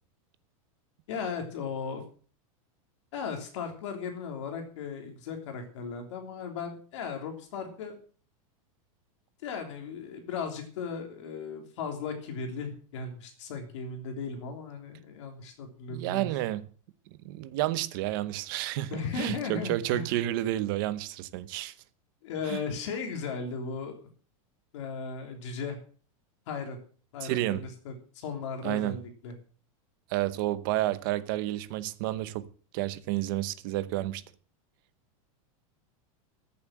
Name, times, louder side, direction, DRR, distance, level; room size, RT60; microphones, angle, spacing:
voice 1, 1.1-2.0 3.1-8.0 9.4-16.3 18.9-20.1 22.2-23.9 24.7-25.8 26.5-26.8 27.1-29.3, left 5 dB, 55° left, 3.4 m, -36 dB
voice 2, 15.9-16.7 17.2-21.7 22.4-22.6 27.2-27.7 28.6-29.0 30.1-32.5 32.7-34.2, right 15 dB, 40° right, 0.9 m, -30 dB
14.0 x 7.3 x 7.6 m
supercardioid pair, 180°, 18 cm